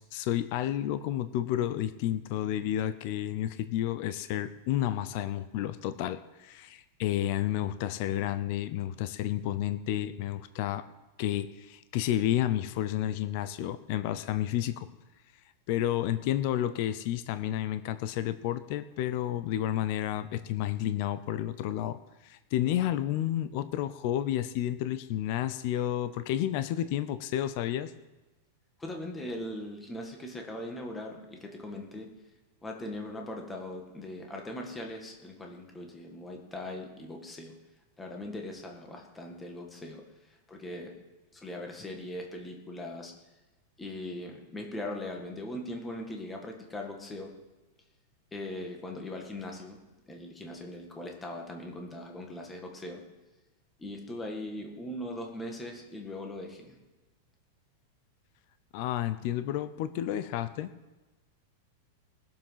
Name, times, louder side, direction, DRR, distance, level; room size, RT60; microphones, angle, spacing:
voice 1, 0.0-10.8 11.2-14.9 15.7-22.0 22.2-27.9 58.7-60.7, left 12 dB, 45° left, 12 dB, 0.6 m, -31 dB
voice 2, 28.8-32.1 32.6-37.6 38.0-40.0 40.5-40.9 41.3-43.1 43.8-47.3 48.3-49.8 50.1-53.0 53.8-56.8, left 1 dB, 10° left, 1 dB, 1.7 m, -40 dB
19.5 x 7.4 x 5.8 m, 1.1 s
supercardioid pair, 165°, 0 cm